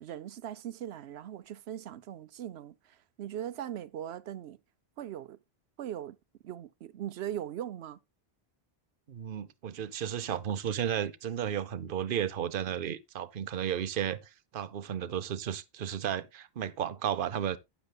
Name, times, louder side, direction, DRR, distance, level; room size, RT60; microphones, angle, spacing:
voice 1, 0.0-4.6 5.0-5.4 5.8-6.2 6.4-8.0, right 11 dB, 85° right, 0.9 m, -40 dB
voice 2, 9.1-17.6, right 9 dB, 60° right, 0.9 m, -33 dB
12.0 x 9.1 x 2.2 m
omnidirectional pair, 1.1 m